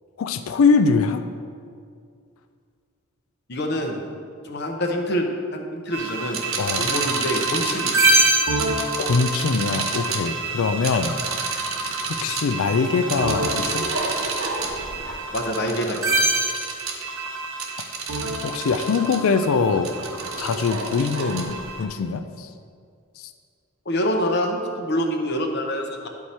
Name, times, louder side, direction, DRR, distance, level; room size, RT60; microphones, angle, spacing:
voice 1, 0.2-1.2 6.6-6.9 9.0-11.1 11.6-11.7 12.2-13.9 18.4-19.9 20.4-22.5 23.2-23.3, left 4 dB, 80° left, 9 dB, 0.4 m, -22 dB
voice 2, 3.5-4.0 4.4-6.4 6.8-8.0 15.3-16.1 23.9-26.1, equal, 50° left, 3 dB, 0.8 m, -26 dB
sound 1, 5.9-21.9, right 2 dB, 70° right, 1.0 m, -26 dB
10.0 x 4.7 x 4.2 m, 2.2 s
head